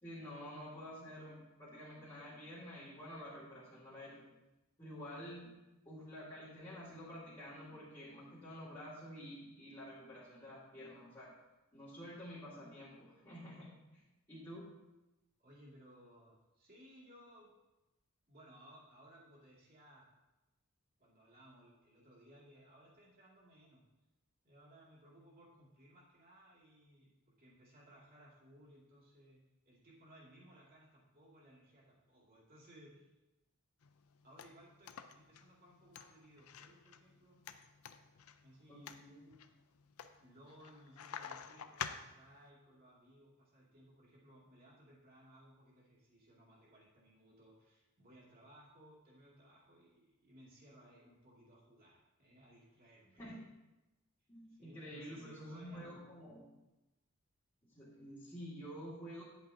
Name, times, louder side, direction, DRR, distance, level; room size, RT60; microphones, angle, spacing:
voice 1, 0.0-4.3 4.8-5.5 5.9-11.3 11.7-14.0 14.3-14.7 38.7-39.3 53.2-53.5 54.3-56.4 57.7-59.2, equal, 20° left, -11 dB, 2.2 m, -49 dB
voice 2, 15.4-17.5 18.3-20.1 21.0-23.9 24.4-27.1 27.4-33.1 34.2-37.4 38.4-39.0 40.2-53.2 54.5-56.0, equal, 40° right, -5 dB, 2.4 m, -61 dB
sound 1, 33.8-42.5, left 7 dB, 85° left, 0.5 m, -50 dB
10.5 x 8.3 x 2.8 m, 1.0 s
head